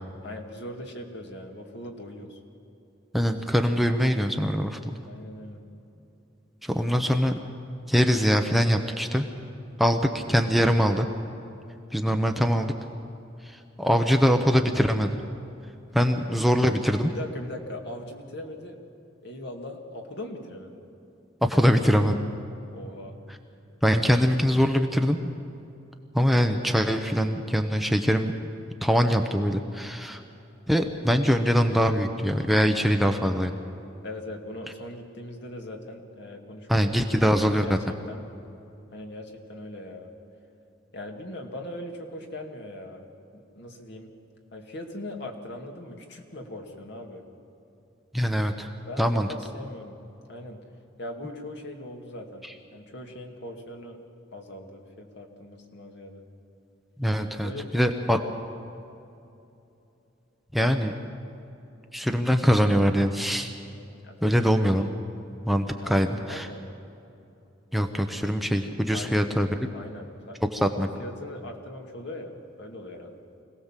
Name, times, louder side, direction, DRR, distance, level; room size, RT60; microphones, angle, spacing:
voice 1, 0.2-2.4 5.0-5.6 16.0-16.2 17.1-18.8 19.2-20.8 22.7-23.2 34.0-36.7 37.1-37.8 38.1-38.2 38.9-40.1 40.9-43.1 43.3-44.1 44.5-47.2 48.8-50.0 50.3-50.6 51.0-52.5 52.7-54.0 54.3-56.2 57.4-58.2 64.0-64.4 65.8-66.7 68.9-70.4 70.6-72.3 72.6-73.2, left 1 dB, 60° left, 3 dB, 2.3 m, -40 dB
voice 2, 3.1-5.0 6.6-7.3 7.9-9.3 9.8-11.1 11.9-12.7 13.4-15.2 15.9-17.1 21.4-22.1 23.3-23.4 23.8-25.3 26.1-28.3 28.8-30.2 30.7-33.6 36.7-37.8 48.1-48.7 49.0-49.3 52.4-52.5 57.0-58.2 60.5-60.9 61.9-63.5 64.2-64.9 65.4-66.5 67.7-69.5 70.5-70.9, equal, ahead, 5 dB, 0.8 m, -23 dB
25.0 x 17.5 x 7.4 m, 2.8 s
head